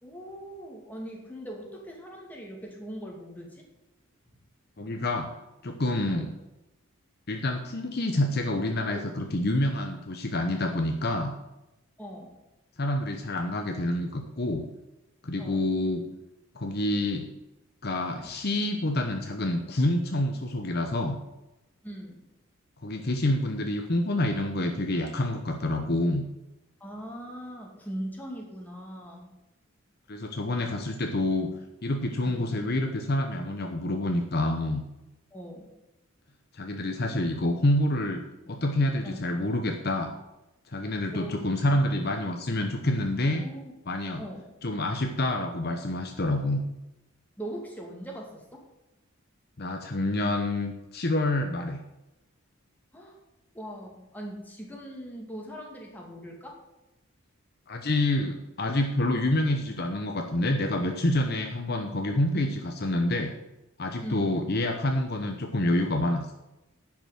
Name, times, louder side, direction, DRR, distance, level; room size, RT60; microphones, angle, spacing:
voice 1, 0.0-3.6 6.1-6.3 8.9-9.1 12.0-12.4 15.4-15.6 21.8-22.2 26.8-29.3 32.2-32.5 35.3-35.7 39.0-39.3 41.1-41.4 43.3-43.6 44.2-44.5 47.4-48.6 52.9-53.2 53.5-56.6 62.3-62.5 64.0-64.4, right 1 dB, 10° left, -1 dB, 2.3 m, -40 dB
voice 2, 4.8-5.3 5.6-6.3 7.3-11.3 12.8-14.6 15.2-16.0 16.5-17.3 17.8-21.2 22.8-26.2 30.1-31.5 31.8-34.8 36.5-38.2 38.5-40.1 40.7-43.4 43.9-44.2 44.6-46.6 49.6-51.8 57.7-63.3 63.8-66.3, left 1 dB, 45° left, 4 dB, 0.9 m, -27 dB
11.0 x 6.0 x 7.6 m, 0.96 s
head